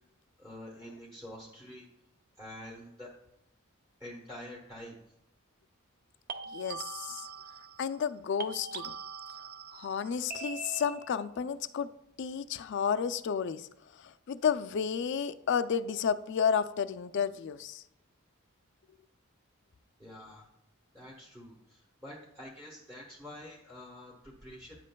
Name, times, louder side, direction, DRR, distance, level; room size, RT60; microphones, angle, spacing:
voice 1, 0.4-1.9 2.4-3.1 4.0-4.9 20.0-20.5 20.9-24.9, left 1 dB, 15° right, -2 dB, 1.1 m, -47 dB
sound 1, 1.3-1.6 6.3-8.1 8.4-11.3, right 5 dB, 45° right, 0.5 m, -43 dB
voice 2, 6.5-7.3 7.8-8.9 9.7-11.9 12.2-13.7 14.0-17.8, left 7 dB, 55° left, 12 dB, 0.4 m, -31 dB
9.8 x 7.4 x 2.2 m, 0.81 s
head